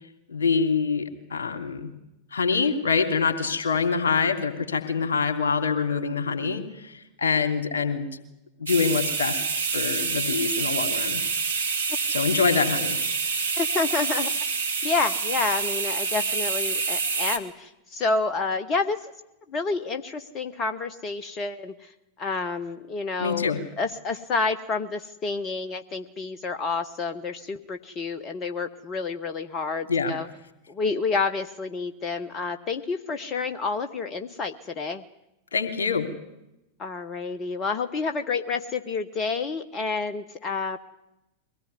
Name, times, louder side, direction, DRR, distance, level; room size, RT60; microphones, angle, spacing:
voice 1, 0.3-1.9 2.3-6.9 7.2-8.1 8.6-9.4 9.7-11.2 12.1-13.0 23.2-23.6 29.9-30.2 35.5-36.0, left 5 dB, 65° left, 6 dB, 3.1 m, -25 dB
sound 1, 8.7-17.4, right 5 dB, 70° right, 1.9 m, -27 dB
voice 2, 13.6-14.3 14.8-19.0 19.5-21.7 22.2-30.3 30.7-35.0 36.8-40.8, left 4 dB, 30° left, 9 dB, 1.2 m, -29 dB
23.0 x 18.0 x 9.6 m, 0.90 s
figure-of-eight pair, 90°, 0 cm